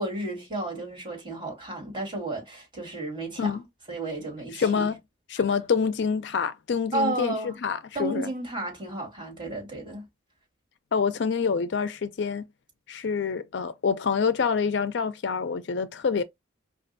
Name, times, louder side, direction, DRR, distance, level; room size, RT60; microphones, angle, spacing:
voice 1, 0.0-3.6 3.9-4.9 6.9-7.6 7.9-10.1, right 2 dB, 25° right, 2.2 m, -32 dB
voice 2, 4.5-5.0 5.3-8.3 10.9-12.4 12.9-16.2, left 6 dB, 60° left, 0.4 m, -26 dB
5.2 x 2.4 x 2.6 m
head